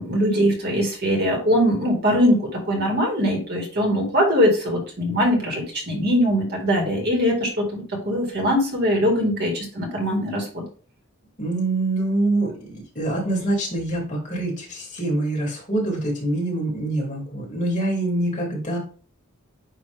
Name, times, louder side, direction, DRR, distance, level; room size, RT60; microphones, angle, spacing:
voice 1, 0.0-10.6, equal, 50° right, 1 dB, 2.1 m, -21 dB
voice 2, 11.4-18.8, right 2 dB, 35° left, -3 dB, 3.0 m, -25 dB
9.4 x 3.1 x 3.5 m, 0.40 s
head